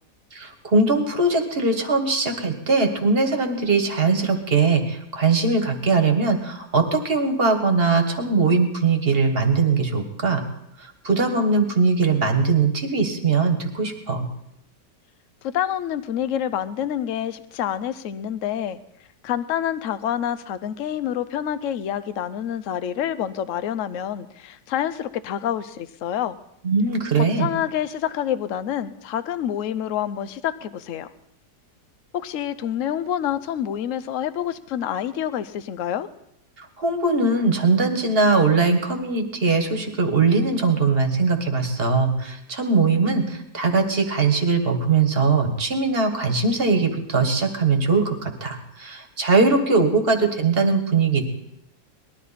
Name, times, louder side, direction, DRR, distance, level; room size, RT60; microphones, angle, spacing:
voice 1, 0.3-10.4 10.8-14.3 26.6-27.5 36.6-51.2, right 4 dB, 35° right, 6 dB, 1.6 m, -21 dB
voice 2, 15.4-18.8 19.2-26.4 27.2-31.1 32.1-36.1, left 10 dB, 65° left, 13 dB, 0.8 m, -27 dB
20.0 x 13.0 x 4.2 m, 0.77 s
omnidirectional pair, 2.0 m